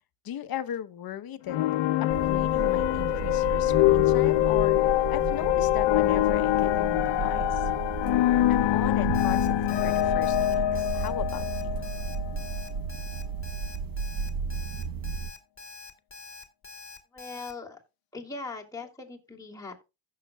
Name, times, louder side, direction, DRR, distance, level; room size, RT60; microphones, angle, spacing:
voice 1, 0.2-1.6 2.0-4.8 5.1-7.6 8.5-11.8, left 10 dB, 55° left, 0.9 m, -37 dB
sound 1, 1.5-12.7, left 15 dB, 85° left, 0.7 m, -24 dB
sound 2, 2.1-15.3, right 5 dB, 55° right, 1.0 m, -34 dB
Alarm, 9.1-17.5, left 4 dB, 30° left, 1.8 m, -45 dB
voice 2, 17.1-17.8 18.1-19.9, left 3 dB, 10° left, 2.6 m, -40 dB
15.5 x 6.6 x 2.2 m
cardioid pair, 95°, 42 cm